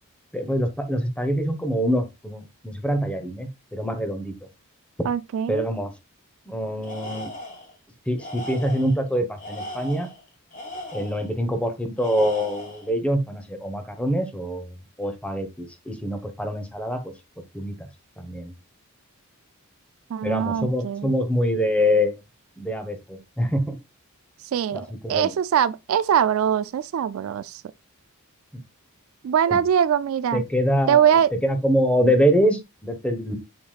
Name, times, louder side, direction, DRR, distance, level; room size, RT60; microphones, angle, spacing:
voice 1, 0.3-4.3 5.0-5.1 5.5-5.9 6.5-7.3 8.1-10.1 10.9-17.1 17.5-17.9 18.2-18.5 20.2-22.2 22.6-23.8 24.7-25.3 28.5-28.6 29.5-29.6 30.3-33.3, equal, 5° left, 1.1 m, -25 dB
voice 2, 5.0-5.6 20.1-21.1 24.5-27.6 29.2-30.4 30.9-31.3, right 8 dB, 65° right, 0.3 m, -22 dB
Tools, 6.8-7.7 8.2-9.0 9.4-11.3 12.0-12.9, left 1 dB, 35° left, 2.5 m, -37 dB
6.9 x 6.7 x 2.4 m
head